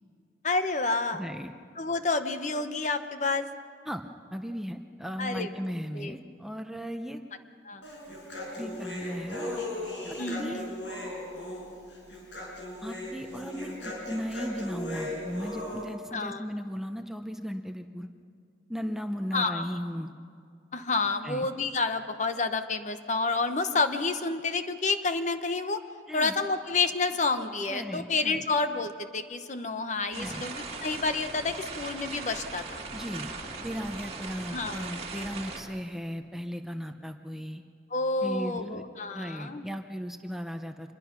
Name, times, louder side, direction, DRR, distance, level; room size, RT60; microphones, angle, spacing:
voice 1, 0.4-1.3 1.8-3.5 5.2-5.5 5.9-6.1 7.7-7.8 10.2-10.7 16.1-16.4 19.3-19.7 20.7-25.8 26.1-30.5 30.8-32.8 34.5-34.9 37.9-39.6, left 3 dB, 40° left, 8 dB, 0.9 m, -29 dB
voice 2, 1.1-1.5 3.9-7.2 8.6-9.6 10.1-10.8 12.8-13.7 14.1-18.1 18.7-20.1 21.2-21.5 26.1-26.4 27.7-28.4 30.1-30.5 32.9-33.3 33.6-37.6 38.2-38.8 39.1-40.9, equal, ahead, 6 dB, 0.7 m, -36 dB
Human voice, 7.8-15.8, left 1 dB, 85° left, 5.9 m, -37 dB
sound 1, 30.1-35.6, right 4 dB, 35° right, 2.4 m, -39 dB
26.0 x 22.0 x 6.0 m, 2.3 s
head